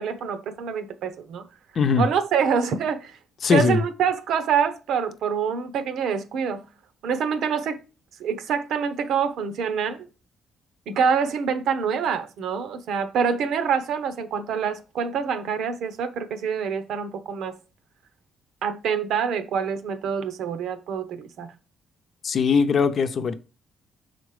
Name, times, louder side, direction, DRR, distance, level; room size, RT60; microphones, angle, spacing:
voice 1, 0.0-1.5 2.0-3.1 3.5-6.6 7.0-7.8 8.2-10.1 10.9-17.6 18.6-21.5, right 6 dB, 75° right, 0.9 m, -26 dB
voice 2, 3.4-3.8 22.2-23.3, left 5 dB, 50° left, 0.8 m, -20 dB
6.4 x 4.2 x 4.9 m
cardioid pair, 90°, 0 cm